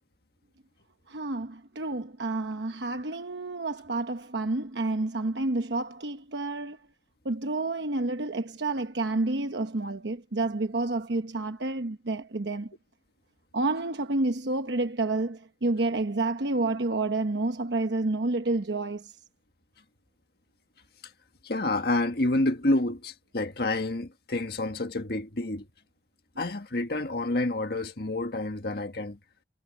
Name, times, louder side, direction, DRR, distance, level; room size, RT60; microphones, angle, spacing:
voice 1, 1.1-6.8 7.2-12.7 13.5-19.1, right 2 dB, 80° right, 1.0 m, -29 dB
voice 2, 21.4-25.7 26.4-29.2, left 2 dB, 60° left, 1.7 m, -28 dB
head